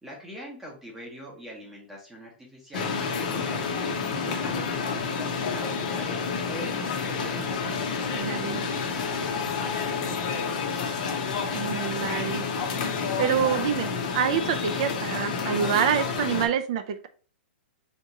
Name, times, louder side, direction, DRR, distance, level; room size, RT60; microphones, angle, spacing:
voice 1, 0.0-6.1 6.4-7.4 7.9-10.6, equal, 5° right, 0.8 m, -43 dB
sound 1, 2.7-16.5, left 5 dB, 40° left, 0.7 m, -29 dB
voice 2, 8.2-8.6 11.5-12.4 13.2-17.1, right 8 dB, 35° right, 0.4 m, -27 dB
3.5 x 2.8 x 4.1 m
hypercardioid pair, 175°, 6 cm